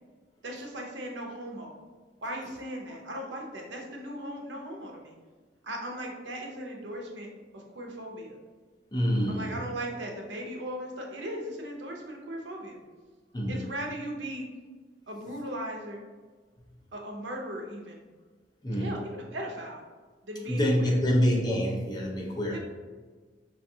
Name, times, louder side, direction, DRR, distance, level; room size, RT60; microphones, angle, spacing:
voice 1, 0.4-1.7 2.2-5.1 5.6-7.3 7.5-8.4 9.3-12.8 13.5-14.5 15.1-16.0 16.9-18.0 18.8-19.8 20.2-21.0 22.5-22.6, right 1 dB, 70° right, 0 dB, 0.7 m, -38 dB
voice 2, 8.9-9.6 13.3-13.7 18.6-19.0 20.5-22.6, equal, 20° left, -2 dB, 0.6 m, -26 dB
4.5 x 2.4 x 2.7 m, 1.4 s
head